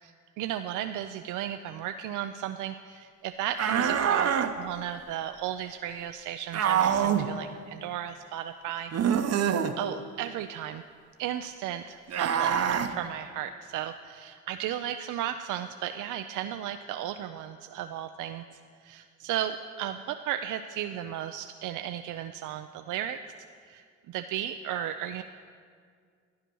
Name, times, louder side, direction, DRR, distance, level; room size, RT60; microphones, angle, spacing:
voice 1, 0.4-9.2 9.8-10.8 11.2-12.6 12.9-23.3 23.6-25.2, right 10 dB, 85° right, 8 dB, 0.5 m, -35 dB
sound 1, 3.6-4.5 6.5-7.3 8.9-9.7 12.1-12.9, right 8 dB, 55° right, 0.8 m, -25 dB
12.0 x 9.8 x 6.1 m, 2.1 s
cardioid pair, 90°, 30 cm